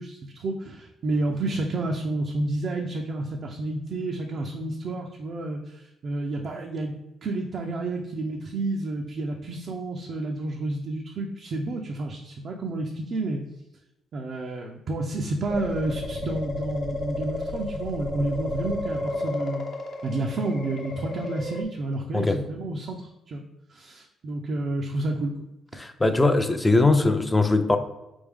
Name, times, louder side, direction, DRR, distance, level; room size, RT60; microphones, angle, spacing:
voice 1, 0.0-6.9 7.2-13.4 14.1-19.6 20.0-23.4 23.7-25.3, right 2 dB, 55° right, 1 dB, 0.5 m, -30 dB
sound 1, 15.5-21.6, left 2 dB, 60° left, 0.9 m, -32 dB
voice 2, 25.8-27.8, left 2 dB, 15° left, 7 dB, 0.5 m, -21 dB
4.2 x 3.5 x 3.5 m, 0.94 s
cardioid pair, 90°, 0 cm